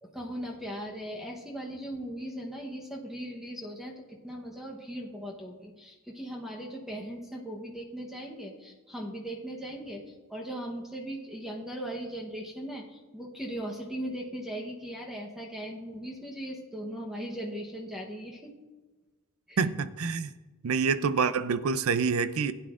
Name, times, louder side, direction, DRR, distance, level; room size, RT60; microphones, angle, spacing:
voice 1, 0.0-18.5 19.5-19.6, equal, ahead, -1 dB, 0.9 m, -38 dB
voice 2, 19.6-20.3 20.6-22.5, right 5 dB, 75° right, 14 dB, 0.5 m, -27 dB
16.5 x 9.7 x 2.5 m, 1.3 s
head